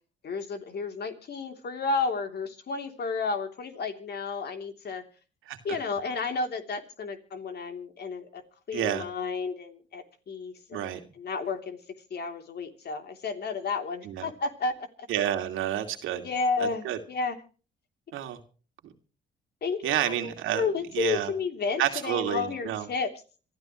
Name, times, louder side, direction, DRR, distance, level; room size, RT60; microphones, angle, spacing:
voice 1, 0.2-5.0 5.6-8.4 8.7-10.9 11.2-11.8 12.1-14.9 16.1-17.4 19.6-23.2, left 4 dB, 55° left, 6 dB, 3.2 m, -32 dB
voice 2, 8.7-9.0 10.7-11.0 14.0-14.3 15.1-16.3 16.6-17.0 18.1-18.4 19.8-20.6 20.9-21.3 21.8-22.9, right 11 dB, 85° right, 6 dB, 2.5 m, -29 dB
26.5 x 13.5 x 3.1 m, 0.39 s
cardioid pair, 90°, 20 cm